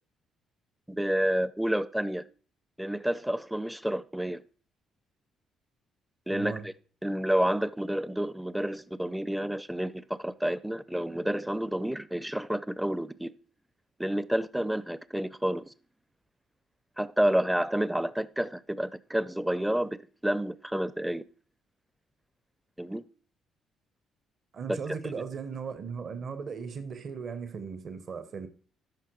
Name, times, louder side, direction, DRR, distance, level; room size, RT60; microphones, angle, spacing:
voice 1, 0.9-2.2 2.8-4.4 6.3-6.5 7.0-13.3 14.0-15.7 17.0-21.2 22.8-23.0 24.7-25.0, right 1 dB, 5° right, 0.5 m, -29 dB
voice 2, 6.3-6.7 24.5-28.5, right 5 dB, 55° right, 1.0 m, -37 dB
13.5 x 5.8 x 3.1 m
hypercardioid pair, 50°, 0 cm